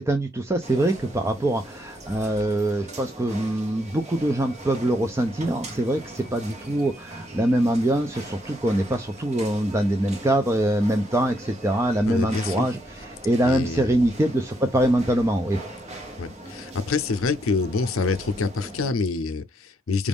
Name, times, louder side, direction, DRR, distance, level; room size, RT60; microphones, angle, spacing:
voice 1, 0.0-12.8 13.2-15.6, right 1 dB, 15° right, 0.4 m, -23 dB
sound 1, 0.6-18.9, right 2 dB, 35° right, 0.9 m, -41 dB
voice 2, 12.1-12.7 13.4-13.9 16.2-20.1, left 4 dB, 80° left, 0.6 m, -26 dB
5.0 x 2.4 x 3.5 m
head